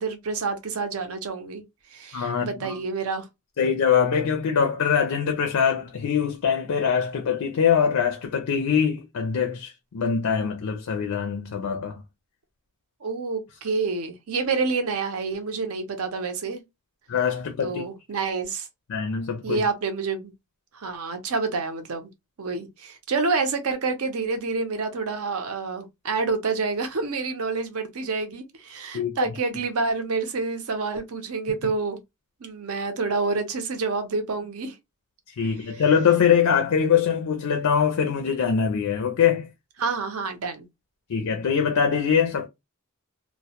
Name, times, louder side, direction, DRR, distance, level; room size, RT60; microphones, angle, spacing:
voice 1, 0.0-1.6 1.9-3.3 13.0-16.6 17.6-18.7 19.4-20.3 20.7-22.1 22.4-32.0 32.4-34.7 39.8-40.7, right 4 dB, 70° right, 0.6 m, -28 dB
voice 2, 2.1-2.8 3.6-12.0 17.1-17.9 18.9-19.6 28.9-29.4 35.4-39.5 41.1-42.5, left 7 dB, 75° left, 0.4 m, -23 dB
2.1 x 2.0 x 2.8 m
head